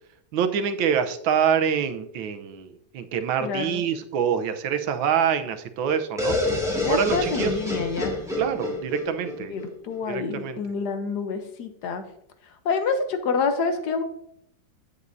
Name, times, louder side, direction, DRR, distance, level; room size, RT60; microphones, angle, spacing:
voice 1, 0.3-2.7 2.9-6.4 6.9-7.5 8.4-9.5 10.1-10.6, right 7 dB, 85° right, 8 dB, 1.5 m, -25 dB
voice 2, 3.4-3.8 6.8-8.2 9.5-12.0 12.6-14.0, left 5 dB, 65° left, 7 dB, 1.3 m, -27 dB
sound 1, 6.2-10.0, left 2 dB, ahead, 2.1 m, -28 dB
9.6 x 8.5 x 2.6 m, 0.73 s
omnidirectional pair, 2.1 m